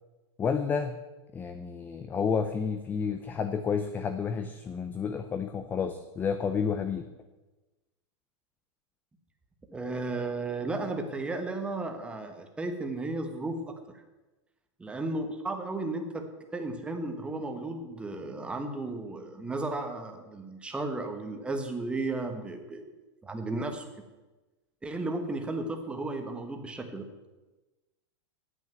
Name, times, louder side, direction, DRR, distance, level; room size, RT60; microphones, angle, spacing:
voice 1, 0.4-0.9 1.3-7.0, left 6 dB, 10° left, 10 dB, 0.4 m, -30 dB
voice 2, 9.7-13.7 14.8-16.3 16.5-22.9 23.2-23.9 24.8-27.0, right 2 dB, 5° right, 5 dB, 1.2 m, -34 dB
9.6 x 8.2 x 9.0 m, 1.1 s
supercardioid pair, 160°, 15 cm